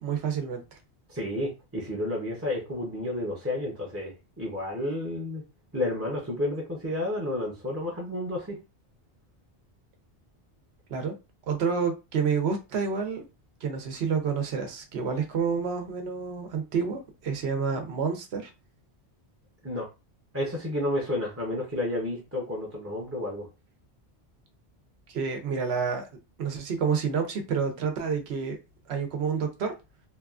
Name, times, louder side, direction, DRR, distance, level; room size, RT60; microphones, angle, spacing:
voice 1, 0.0-0.6 10.9-11.1 11.5-13.2 13.6-18.5 25.1-26.1 26.4-28.6 28.9-29.7, right 6 dB, 75° right, 5 dB, 0.9 m, -29 dB
voice 2, 1.1-5.4 5.7-8.6 19.6-19.9 20.3-23.5, left 1 dB, 15° right, -3 dB, 0.6 m, -31 dB
2.9 x 2.3 x 2.3 m, 0.27 s
omnidirectional pair, 1.1 m